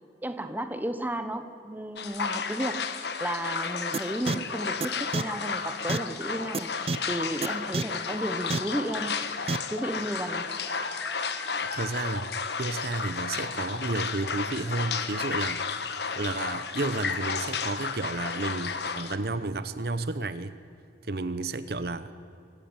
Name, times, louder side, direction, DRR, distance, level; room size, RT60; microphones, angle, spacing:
voice 1, 0.2-2.9 3.2-6.7 7.1-9.2 9.7-10.5, right 1 dB, 10° right, 9 dB, 1.0 m, -33 dB
sound 1, 2.0-19.2, left 5 dB, 65° left, 1.3 m, -32 dB
sound 2, 2.7-3.2 5.0-5.4 5.6-5.7 5.9-6.5 7.2-7.3 7.6-7.7 9.2-9.3 10.2-12.5 12.9-13.0 13.5-13.6 14.0-14.1, left 2 dB, 10° left, 2.5 m, -44 dB
sound 3, 3.9-4.0 4.3-4.4 4.8-4.9 5.1-5.2 5.9-6.0 6.5-6.6 6.9-7.0 7.4-7.5 7.7-7.8 8.5-8.6 9.5-9.6, right 3 dB, 30° right, 0.4 m, -27 dB
voice 2, 11.6-12.3 12.6-20.6 21.0-22.1, right 2 dB, 55° right, 13 dB, 0.8 m, -32 dB
25.0 x 15.5 x 8.9 m, 2.6 s
head